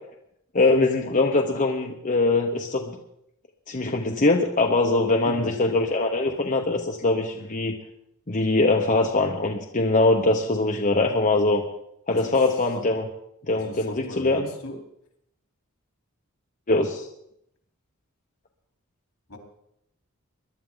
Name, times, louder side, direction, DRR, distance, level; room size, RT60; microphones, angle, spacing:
voice 1, 0.5-3.0 3.7-7.7 8.3-11.6 12.1-13.1 13.5-14.5 16.7-17.1, left 2 dB, 40° left, 1 dB, 1.0 m, -22 dB
voice 2, 5.2-5.6 12.1-12.4 13.5-14.8 19.3-19.4, left 1 dB, 75° left, 1 dB, 3.9 m, -38 dB
22.0 x 12.0 x 4.0 m, 0.78 s
head